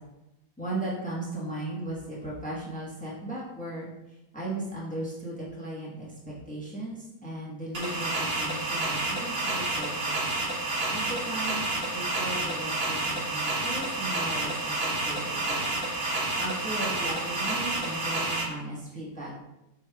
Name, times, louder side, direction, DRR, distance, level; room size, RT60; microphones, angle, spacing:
voice 1, 0.6-3.9 4.3-10.2 10.9-11.6 11.9-15.6 16.4-19.3, right 1 dB, 5° left, -6 dB, 0.8 m, -36 dB
sound 1, 7.7-18.4, right 2 dB, 50° right, 1.8 m, -29 dB
6.7 x 3.4 x 2.3 m, 0.95 s
omnidirectional pair, 1.9 m